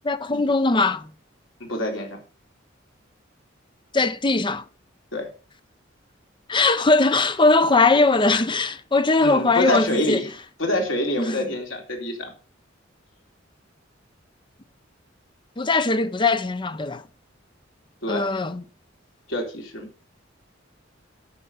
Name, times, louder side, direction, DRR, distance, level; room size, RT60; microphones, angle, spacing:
voice 1, 0.0-1.1 3.9-4.6 6.5-10.2 11.2-11.4 15.6-17.0 18.1-18.6, left 3 dB, 25° left, 0.7 m, -20 dB
voice 2, 1.6-2.2 5.1-5.3 9.2-10.3 10.6-12.3 18.0-18.3 19.3-19.9, left 1 dB, 80° left, 3.4 m, -26 dB
12.5 x 5.8 x 5.6 m
head